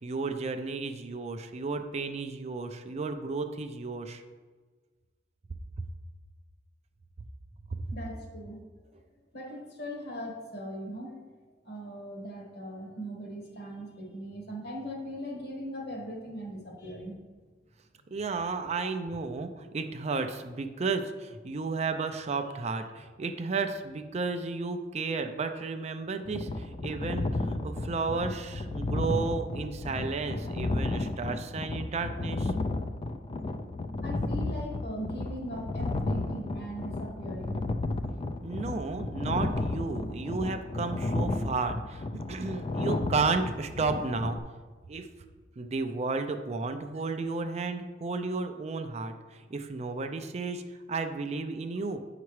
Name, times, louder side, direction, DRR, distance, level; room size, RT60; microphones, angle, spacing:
voice 1, 0.0-4.2 7.8-7.9 18.1-32.5 38.4-44.4 44.9-45.1 45.6-50.6 50.9-52.0, right 4 dB, 35° right, 7 dB, 0.4 m, -33 dB
voice 2, 7.9-8.6 9.3-11.2 11.6-17.2 18.7-18.9 34.0-37.6, equal, 60° left, 1 dB, 1.5 m, -39 dB
sound 1, 26.3-44.4, left 2 dB, 30° left, 0.3 m, -33 dB
8.2 x 5.8 x 3.1 m, 1.4 s
head